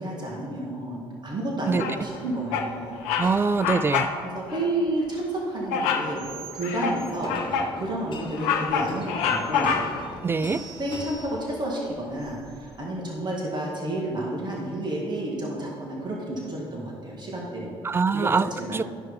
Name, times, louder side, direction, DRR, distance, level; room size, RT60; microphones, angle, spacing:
voice 1, 0.0-3.0 4.3-9.7 10.8-17.8 18.1-18.8, right 1 dB, 35° right, -3 dB, 1.9 m, -31 dB
Bird vocalization bird call bird song, 1.8-2.2 2.5-2.7 3.0-3.3 3.6-4.2 4.5-4.7 5.7-6.1 6.6-7.7 8.2-10.1, left 6 dB, 70° left, 0.6 m, -26 dB
sound 1, 3.2-4.3 5.0-5.5 7.2-12.1, left 3 dB, 40° left, 1.1 m, -41 dB
voice 2, 3.2-4.1 10.2-10.6 17.8-18.8, right 4 dB, 20° right, 15 dB, 0.3 m, -24 dB
sound 2, 6.1-12.8, right 5 dB, 85° right, 1.1 m, -47 dB
12.0 x 5.3 x 4.0 m, 2.2 s
hypercardioid pair, 50°, 13 cm